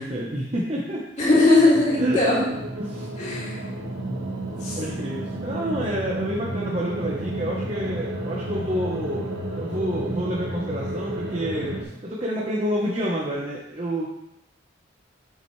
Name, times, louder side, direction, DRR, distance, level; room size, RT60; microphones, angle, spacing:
voice 1, 0.0-1.0 2.0-2.2 2.8-3.1 4.7-9.2 9.5-14.1, equal, 30° right, -4 dB, 1.1 m, -29 dB
voice 2, 1.2-2.4 3.2-3.6 4.6-4.8, left 2 dB, 35° left, -7 dB, 3.1 m, -19 dB
sound 1, 1.6-11.8, right 1 dB, 70° right, 1.7 m, -31 dB
8.2 x 7.9 x 3.3 m, 0.83 s
head